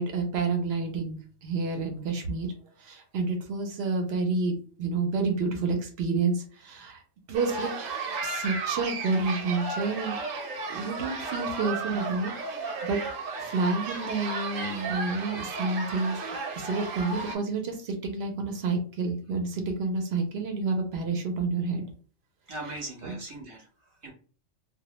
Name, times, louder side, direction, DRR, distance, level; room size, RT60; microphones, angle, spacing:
voice 1, 0.0-2.5 2.8-7.0 7.3-7.7 8.2-10.2 10.7-12.3 12.6-13.0 13.4-16.2 16.5-21.9 23.0-23.2, right 3 dB, 65° right, 4 dB, 0.7 m, -29 dB
sound 1, 7.3-17.4, right 4 dB, 90° right, 1.0 m, -34 dB
voice 2, 22.5-24.1, right 2 dB, 30° right, -1 dB, 0.8 m, -40 dB
2.2 x 2.0 x 2.9 m, 0.41 s
omnidirectional pair, 1.3 m